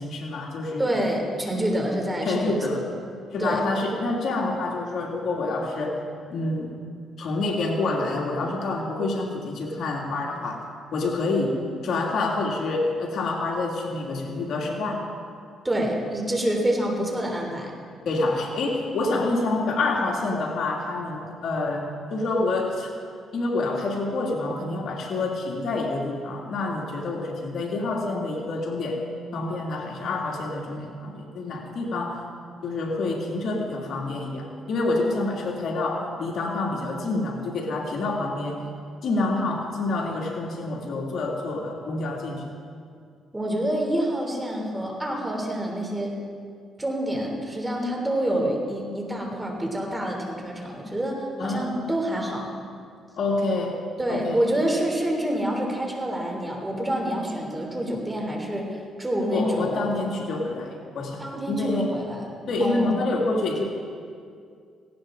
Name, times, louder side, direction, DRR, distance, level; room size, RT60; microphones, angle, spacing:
voice 1, 0.0-0.9 2.2-2.8 3.3-6.0 6.3-6.7 7.2-10.6 10.9-15.1 18.1-22.9 23.3-29.0 29.3-32.2 32.6-38.7 39.0-42.5 51.4-51.8 53.2-54.4 59.3-61.9 62.5-63.6, left 2 dB, 65° left, 0 dB, 2.4 m, -27 dB
voice 2, 0.8-2.6 3.4-3.6 15.6-17.7 43.3-46.2 46.8-52.5 54.0-59.9 61.2-62.2 62.6-62.9, right 1 dB, 15° right, 1 dB, 3.3 m, -27 dB
18.0 x 17.5 x 3.9 m, 2.2 s
cardioid pair, 90°, 0 cm